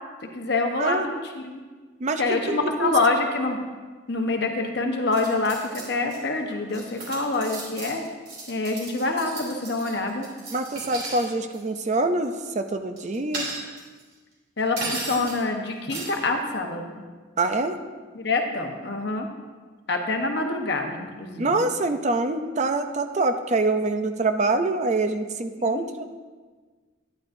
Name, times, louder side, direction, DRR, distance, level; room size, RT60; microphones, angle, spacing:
voice 1, 0.3-1.6 2.2-3.6 4.1-8.0 8.5-10.3 14.6-17.0 18.1-19.3 19.9-21.7 25.6-25.9, left 3 dB, 55° left, 3 dB, 1.0 m, -26 dB
voice 2, 2.0-2.9 10.5-13.5 17.4-17.8 21.4-26.1, right 2 dB, 35° right, 8 dB, 0.5 m, -25 dB
sound 1, 5.1-6.2 6.5-11.3 11.5-11.8 13.0-14.0 14.8-15.4 15.9-16.3, right 3 dB, 50° right, 3.1 m, -35 dB
11.5 x 10.0 x 2.6 m, 1.4 s
head